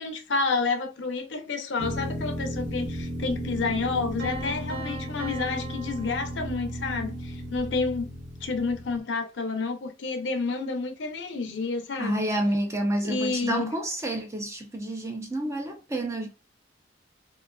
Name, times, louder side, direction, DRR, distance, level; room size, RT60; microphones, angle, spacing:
voice 1, 0.0-8.1 8.4-12.2 13.0-13.7, left 4 dB, 65° left, 0.6 m, -29 dB
sound 1, 1.8-9.0, equal, 40° right, 0.7 m, -35 dB
Piano, 4.2-7.1, right 2 dB, 70° right, 0.9 m, -39 dB
voice 2, 12.0-16.3, right 1 dB, 15° right, 0.4 m, -29 dB
2.5 x 2.3 x 2.3 m
head